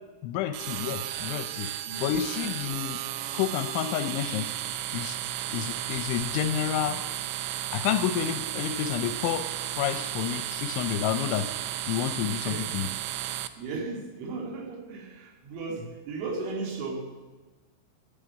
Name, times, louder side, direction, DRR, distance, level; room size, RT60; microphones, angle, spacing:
voice 1, 0.2-1.7 2.0-3.0 3.3-4.5 4.9-5.2 5.5-7.0 7.7-9.5 9.7-11.5 11.9-12.9, left 10 dB, 80° left, 10 dB, 2.8 m, -29 dB
sound 1, 0.5-13.5, right 13 dB, 85° right, 2.5 m, -34 dB
voice 2, 1.9-2.2 2.7-2.8 5.5-5.6 12.4-12.7 13.6-17.1, right 3 dB, 70° right, 2 dB, 4.7 m, -36 dB
14.5 x 10.5 x 9.0 m, 1.3 s
omnidirectional pair, 5.9 m